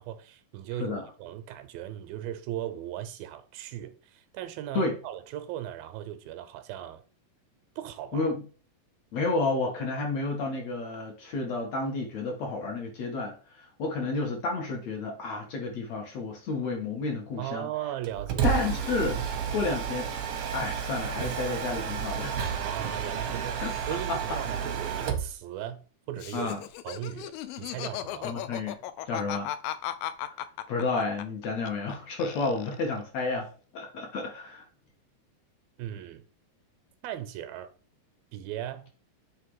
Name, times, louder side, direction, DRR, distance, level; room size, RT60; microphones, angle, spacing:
voice 1, 0.0-7.0 7.8-8.3 17.4-18.6 22.5-26.5 26.8-27.3 27.6-28.3 35.8-36.2 37.0-37.7 38.3-38.9, right 12 dB, 85° right, 2.5 m, -37 dB
voice 2, 9.1-17.7 18.4-20.1 20.5-22.4 23.6-23.7 24.1-24.2 26.3-26.6 28.2-28.8 29.1-29.5 30.2-30.4 30.7-34.6, left 3 dB, 60° left, 2.1 m, -31 dB
Mechanisms, 18.0-25.3, right 7 dB, 65° right, 1.5 m, -31 dB
Laughter, 26.2-31.9 32.2-33.0, left 12 dB, 85° left, 2.2 m, -36 dB
8.4 x 3.4 x 4.7 m
omnidirectional pair, 4.1 m